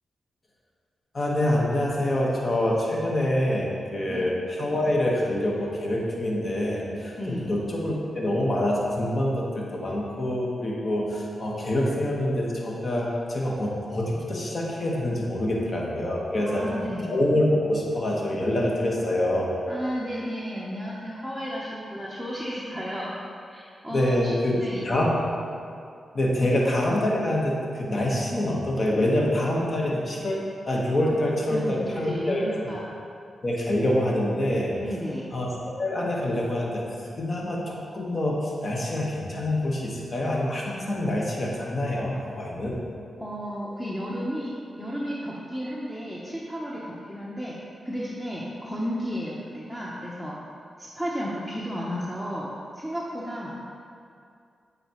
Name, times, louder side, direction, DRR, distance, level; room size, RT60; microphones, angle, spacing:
voice 1, 1.1-16.8 17.0-19.5 23.9-24.6 24.8-25.1 26.1-32.5 33.4-34.7 35.3-35.5 35.8-36.8 37.2-42.8, left 1 dB, 50° left, -3 dB, 1.3 m, -26 dB
voice 2, 7.2-7.5 15.5-15.8 16.4-17.1 19.7-23.1 23.5-24.8 26.4-26.5 31.5-32.8 34.8-35.3 43.2-47.5 47.8-50.4 50.8-53.8, equal, 5° left, -6 dB, 0.9 m, -33 dB
9.0 x 4.0 x 3.0 m, 2.4 s
supercardioid pair, 50°, 0 cm